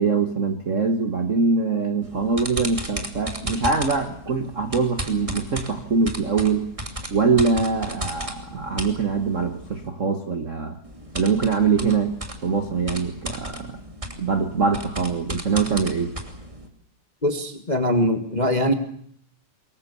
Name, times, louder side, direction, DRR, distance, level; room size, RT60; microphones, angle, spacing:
voice 1, 0.0-6.7 7.1-10.8 11.1-13.8 14.2-16.1, right 4 dB, 45° right, 7 dB, 0.9 m, -23 dB
sound 1, 2.0-9.9 10.8-16.7, right 1 dB, 10° right, 2.4 m, -35 dB
voice 2, 17.2-18.7, left 1 dB, 20° left, 6 dB, 1.1 m, -22 dB
24.5 x 22.0 x 7.0 m, 0.65 s
omnidirectional pair, 3.5 m